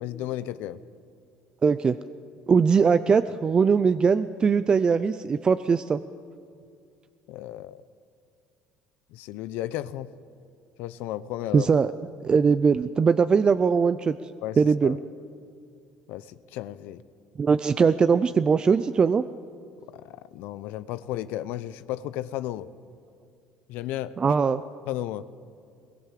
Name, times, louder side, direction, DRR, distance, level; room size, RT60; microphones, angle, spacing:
voice 1, 0.0-0.8 7.3-7.8 9.1-10.1 10.8-11.7 14.4-15.0 16.1-17.0 19.9-22.7 23.7-24.2 24.9-25.3, left 13 dB, 75° left, 14 dB, 0.8 m, -34 dB
voice 2, 1.6-2.0 2.5-6.0 11.5-11.9 12.2-14.2 14.6-15.0 17.4-19.2 24.2-24.6, right 5 dB, 25° right, 12 dB, 0.5 m, -21 dB
21.5 x 19.0 x 7.6 m, 2.3 s
cardioid pair, 120°, 3 cm